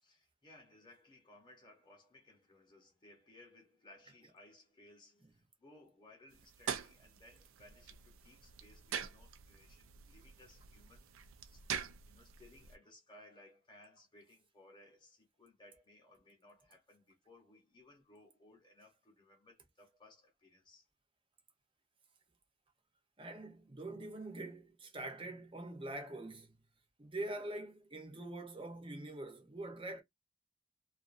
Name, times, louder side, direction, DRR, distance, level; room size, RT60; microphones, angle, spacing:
voice 1, 0.0-11.6 12.0-20.9, left 1 dB, 25° left, 1.0 m, -62 dB
sound 1, 6.3-12.7, right 8 dB, 85° right, 0.4 m, -45 dB
voice 2, 23.2-26.5 27.0-30.0, right 2 dB, 25° right, 0.8 m, -44 dB
2.4 x 2.4 x 2.5 m
head